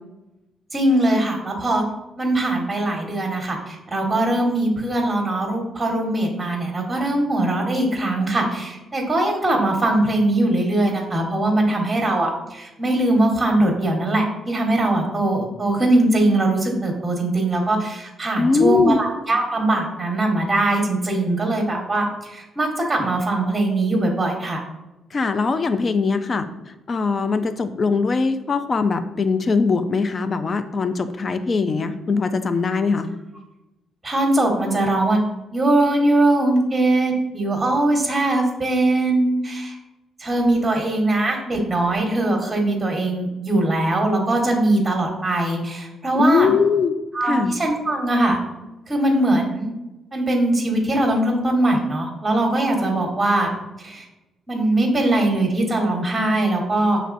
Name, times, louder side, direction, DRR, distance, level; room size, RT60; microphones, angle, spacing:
voice 1, 0.7-1.8 2.2-24.6 34.0-35.2 35.5-39.7 40.2-46.5 47.1-48.4 48.9-49.7 50.1-53.5 53.8-54.1 54.5-57.0, right 1 dB, 20° right, 1 dB, 1.1 m, -21 dB
voice 2, 18.4-19.0 25.1-26.5 26.9-33.1 46.2-46.9 47.2-47.5, left 4 dB, 40° left, 10 dB, 0.4 m, -21 dB
6.5 x 3.1 x 2.6 m, 0.99 s
cardioid pair, 90°, 0 cm